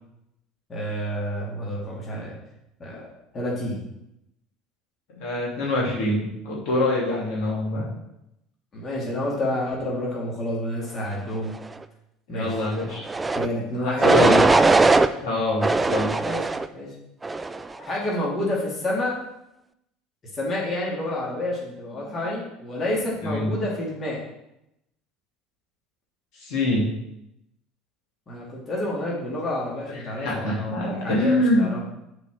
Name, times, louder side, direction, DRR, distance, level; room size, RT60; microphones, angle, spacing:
voice 1, 0.7-2.4 2.8-3.0 3.3-3.8 8.7-11.6 12.3-12.5 13.3-14.3 16.2-16.4 16.7-16.9 17.9-19.2 20.3-24.2 28.3-31.8, left 1 dB, 30° left, -4 dB, 2.6 m, -29 dB
voice 2, 5.1-7.8 12.3-13.1 13.8-14.6 15.2-16.2 23.2-23.5 26.3-26.9 30.2-31.6, left 1 dB, 60° left, -5 dB, 2.6 m, -25 dB
sound 1, 13.1-13.5 14.0-15.1 15.6-16.7 17.2-17.7, right 3 dB, 15° right, 0.5 m, -19 dB
6.9 x 4.4 x 6.1 m, 0.84 s
hypercardioid pair, 70°, 0 cm